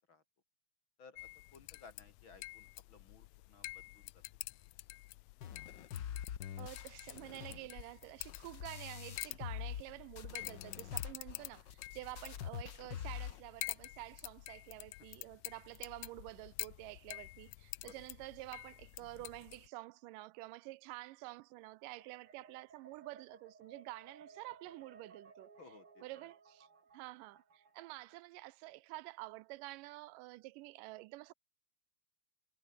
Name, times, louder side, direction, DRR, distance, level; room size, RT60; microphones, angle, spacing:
voice 1, 1.0-4.2 17.8-17.9 25.6-26.3, left 4 dB, 40° left, 2.7 m, -59 dB
sound 1, 1.2-19.7, left 20 dB, 90° left, 1.6 m, -49 dB
sound 2, 5.4-9.9 10.2-13.4, left 9 dB, 70° left, 1.0 m, -45 dB
voice 2, 6.6-25.5 26.0-26.7 26.9-31.3, right 20 dB, 85° right, 2.2 m, -49 dB
sound 3, 21.9-28.3, right 5 dB, 40° right, 4.4 m, -61 dB
omnidirectional pair, 3.8 m